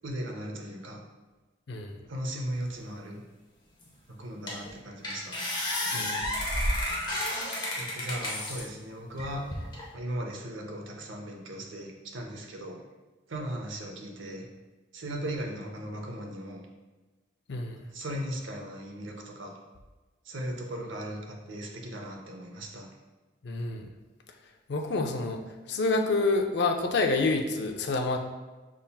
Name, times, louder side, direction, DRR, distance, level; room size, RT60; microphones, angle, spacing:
voice 1, 0.0-1.0 2.1-3.2 4.1-5.4 7.8-9.5 9.9-12.8 13.3-14.5 14.9-16.6 17.9-19.5 20.2-22.9, right 1 dB, 75° right, 2 dB, 0.7 m, -37 dB
voice 2, 1.7-2.0 5.9-6.3 17.5-17.9 23.4-23.9 24.7-25.4 25.7-28.2, left 3 dB, 55° left, 4 dB, 0.4 m, -28 dB
sound 1, 3.8-3.9 4.5-4.7 5.0-8.6 9.2-9.8, left 1 dB, 20° left, 0.8 m, -31 dB
5.4 x 3.6 x 2.3 m, 1.2 s
head